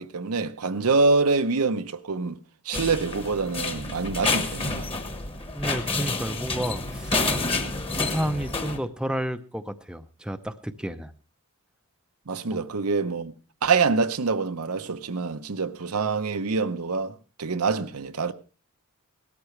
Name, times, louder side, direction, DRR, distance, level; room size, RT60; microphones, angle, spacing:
voice 1, 0.0-2.4 2.6-4.9 12.3-13.3 13.6-18.3, right 4 dB, 80° right, 0.8 m, -25 dB
sound 1, 2.7-8.8, left 3 dB, 25° left, 1.3 m, -29 dB
voice 2, 5.5-7.2 8.0-11.1 12.5-12.6, equal, 5° right, 0.6 m, -31 dB
18.0 x 13.0 x 3.2 m
head